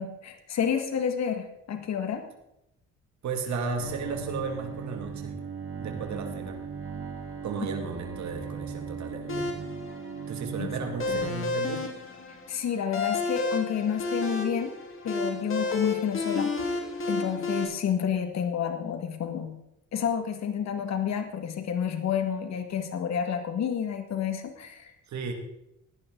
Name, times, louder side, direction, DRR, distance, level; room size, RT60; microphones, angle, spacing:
voice 1, 0.0-2.3 10.6-10.7 11.1-11.2 12.5-14.7 15.0-16.5 17.1-19.5 19.9-24.9, left 8 dB, 65° left, 6 dB, 1.9 m, -29 dB
voice 2, 3.2-5.3 5.8-6.6 7.4-9.5 10.3-11.9 25.1-25.3, right 4 dB, 65° right, 4 dB, 2.3 m, -34 dB
Bowed string instrument, 3.8-11.3, right 6 dB, 45° right, 2.1 m, -38 dB
sound 1, 9.3-17.6, left 3 dB, 45° left, 3.5 m, -31 dB
16.0 x 11.0 x 3.9 m, 0.83 s
cardioid pair, 90°, 30 cm